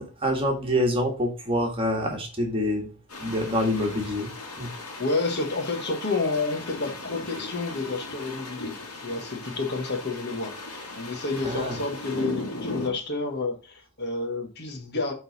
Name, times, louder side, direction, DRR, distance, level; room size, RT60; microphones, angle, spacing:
voice 1, 0.0-2.9 3.2-4.3 4.6-4.7 11.4-11.8, equal, 25° right, 1.7 m, -26 dB
sound 1, 3.1-12.9, left 2 dB, 90° left, 2.1 m, -38 dB
voice 2, 5.0-15.1, left 3 dB, 50° left, 1.5 m, -30 dB
8.8 x 4.0 x 4.1 m
head